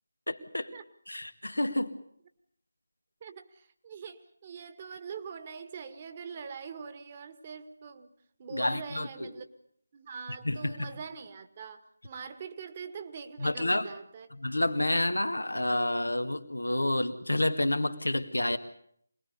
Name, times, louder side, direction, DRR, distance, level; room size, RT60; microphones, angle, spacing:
voice 1, 0.3-0.7 1.1-1.9 8.5-9.3 10.4-10.9 13.4-13.9 14.4-18.6, left 1 dB, 80° left, 8 dB, 2.2 m, -29 dB
voice 2, 3.2-8.1 8.4-9.5 9.9-14.3, right 6 dB, 30° right, 9 dB, 1.9 m, -43 dB
25.5 x 20.0 x 6.9 m, 0.66 s
figure-of-eight pair, 160°, 0 cm